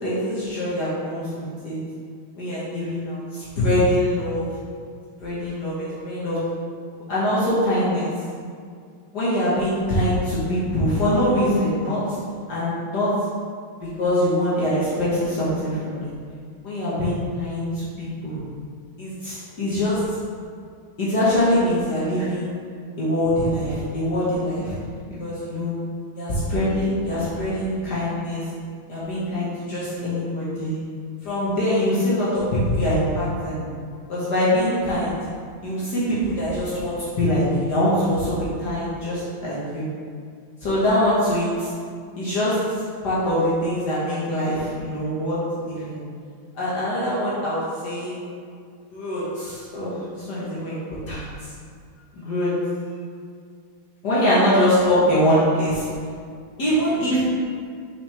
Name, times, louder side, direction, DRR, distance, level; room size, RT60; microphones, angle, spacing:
voice 1, 0.0-1.8 2.3-4.5 5.2-6.4 6.9-8.1 9.1-12.0 12.5-13.1 14.0-16.0 16.6-18.4 19.0-20.2 21.0-22.5 23.0-24.8 25.2-25.7 26.2-28.4 28.9-30.8 31.2-33.6 34.1-35.1 35.6-37.4 37.7-39.9 40.6-41.7 42.2-46.0 46.6-48.1 48.9-50.8 51.1-51.2 52.2-52.5 54.0-55.9 56.6-57.2, left 1 dB, 55° left, -10 dB, 1.9 m, -23 dB
5.9 x 5.4 x 3.4 m, 2.2 s
omnidirectional pair, 2.3 m